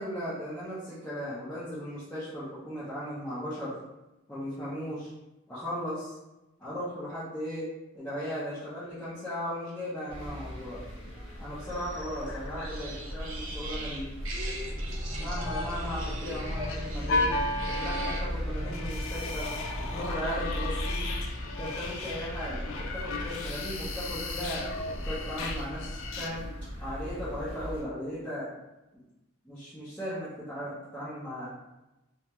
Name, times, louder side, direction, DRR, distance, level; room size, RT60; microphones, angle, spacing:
voice 1, 0.0-3.8 4.3-5.1 5.5-6.2 6.6-7.7 7.9-10.8 11.4-14.1 15.2-17.3 17.7-19.5 19.8-21.1 21.6-24.7 25.0-26.4 26.8-28.5 29.4-31.5, equal, 10° left, -13 dB, 0.6 m, -37 dB
sound 1, 10.1-10.6 10.8-10.9 11.2-13.1 15.0-26.3, left 2 dB, 85° left, 0.3 m, -35 dB
sound 2, 10.1-27.8, equal, 25° right, 1.0 m, -37 dB
sound 3, 12.6-18.2, right 2 dB, 80° right, 0.5 m, -42 dB
2.4 x 2.2 x 2.9 m, 0.96 s
head